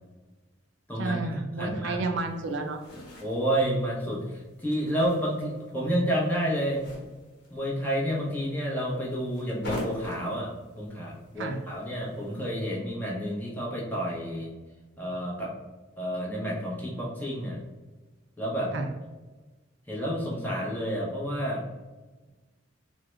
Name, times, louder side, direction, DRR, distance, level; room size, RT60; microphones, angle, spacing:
voice 1, 1.0-2.8 11.4-11.6 18.7-18.9, right 3 dB, 65° right, 4 dB, 0.4 m, -31 dB
voice 2, 1.6-2.0 3.2-6.8 7.5-14.5 15.0-15.5 16.0-17.6 18.4-18.7 19.9-21.6, equal, 10° left, -4 dB, 0.7 m, -30 dB
sound 1, 2.2-12.5, equal, 50° left, 0.9 m, -44 dB
3.6 x 2.1 x 3.0 m, 1.2 s
head